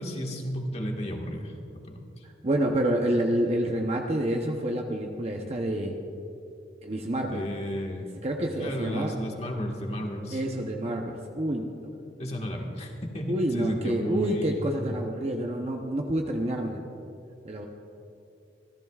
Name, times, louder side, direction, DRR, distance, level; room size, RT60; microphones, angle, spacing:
voice 1, 0.0-2.2 7.3-8.1 8.6-10.4 12.2-15.1, equal, 35° left, 1 dB, 1.6 m, -33 dB
voice 2, 2.4-6.0 6.8-7.4 8.2-9.1 10.3-11.7 13.3-16.8 17.4-17.7, right 1 dB, 35° right, 2 dB, 0.8 m, -28 dB
26.5 x 14.5 x 2.4 m, 2.6 s
head